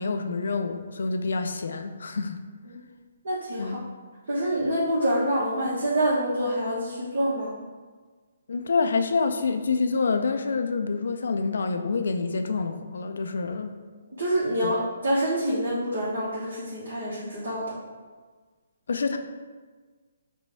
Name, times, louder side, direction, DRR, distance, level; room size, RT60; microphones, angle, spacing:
voice 1, 0.0-2.4 3.6-3.8 8.5-13.7 14.6-14.7 18.9-19.2, left 4 dB, 65° left, 6 dB, 0.4 m, -27 dB
voice 2, 3.2-3.7 4.3-7.5 14.2-17.7, right 1 dB, 60° right, -8 dB, 1.0 m, -26 dB
5.1 x 2.2 x 3.4 m, 1.4 s
figure-of-eight pair, 140°, 0 cm